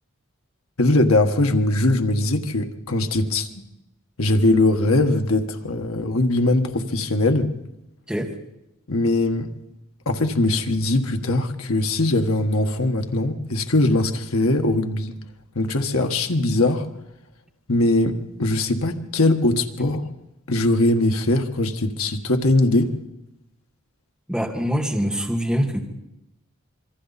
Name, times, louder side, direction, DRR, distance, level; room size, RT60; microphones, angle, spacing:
voice 1, 0.8-3.5 4.2-7.5 8.9-9.5 10.0-15.1 15.5-16.9 17.7-20.1 20.5-22.9, left 2 dB, 85° left, 5 dB, 1.6 m, -21 dB
voice 2, 24.3-25.9, equal, 5° right, 1 dB, 2.1 m, -24 dB
26.0 x 23.5 x 4.2 m, 0.90 s
head